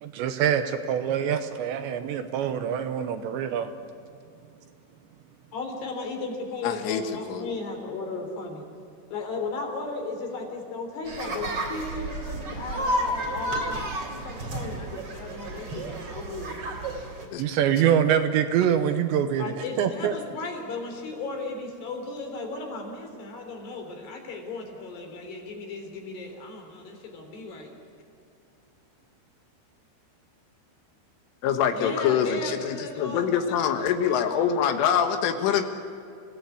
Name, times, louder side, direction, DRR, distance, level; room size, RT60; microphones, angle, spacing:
voice 1, 0.0-3.7 17.4-20.1, right 9 dB, 75° right, 9 dB, 3.0 m, -25 dB
voice 2, 5.5-8.7 9.1-16.6 19.4-27.7 31.7-33.4 33.9-34.6, left 3 dB, 60° left, 2 dB, 5.3 m, -35 dB
voice 3, 6.6-7.0 7.3-7.5 17.3-17.4 31.4-35.6, left 8 dB, 80° left, 7 dB, 4.0 m, -25 dB
sound 1, 11.1-17.3, right 1 dB, 30° right, 3.6 m, -31 dB
28.5 x 17.5 x 8.5 m, 2.6 s
omnidirectional pair, 5.6 m